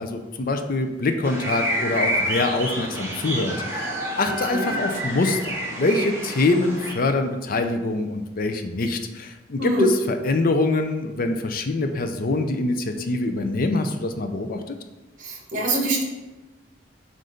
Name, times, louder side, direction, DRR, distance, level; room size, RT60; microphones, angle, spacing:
voice 1, 0.0-14.8, left 2 dB, 50° left, 7 dB, 0.5 m, -24 dB
sound 1, 1.2-6.9, right 1 dB, 15° right, 1.1 m, -28 dB
voice 2, 4.3-4.7 9.6-9.9 15.2-16.0, right 1 dB, 45° right, -1 dB, 1.4 m, -24 dB
7.7 x 2.6 x 5.1 m, 1.1 s
head